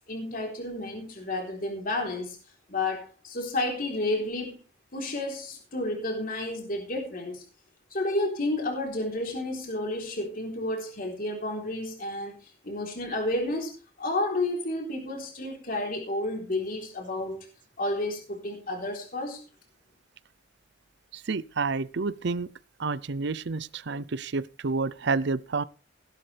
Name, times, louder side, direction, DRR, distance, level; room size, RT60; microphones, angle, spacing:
voice 1, 0.1-2.4 2.7-4.6 4.9-7.4 7.9-13.7 14.0-17.5 17.8-19.4, left 2 dB, 50° left, 3.8 m, -31 dB
voice 2, 21.1-22.5 22.8-25.6, right 4 dB, 60° right, 0.6 m, -29 dB
16.5 x 12.0 x 3.4 m
head